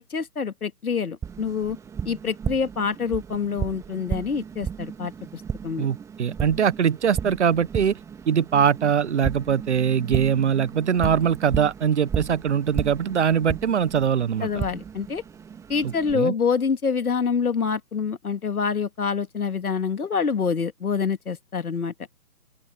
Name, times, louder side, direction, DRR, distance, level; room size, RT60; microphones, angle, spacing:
voice 1, 0.0-1.8 2.0-5.9 14.4-15.2 15.7-21.9, left 6 dB, 70° left, 2.2 m, -26 dB
Tap, 1.2-16.1, right 7 dB, 5° right, 2.1 m, -34 dB
voice 2, 5.8-8.0 8.3-14.5 15.8-16.3, right 8 dB, 45° right, 1.3 m, -22 dB
open air
figure-of-eight pair, 145°, 47 cm